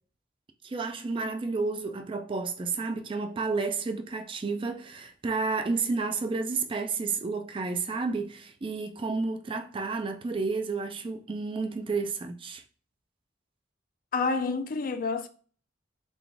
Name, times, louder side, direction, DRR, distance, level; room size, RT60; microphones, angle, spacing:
voice 1, 0.6-12.6, right 4 dB, 25° right, 0.3 m, -31 dB
voice 2, 14.1-15.3, left 4 dB, 45° left, 0.4 m, -28 dB
3.8 x 2.4 x 3.4 m
head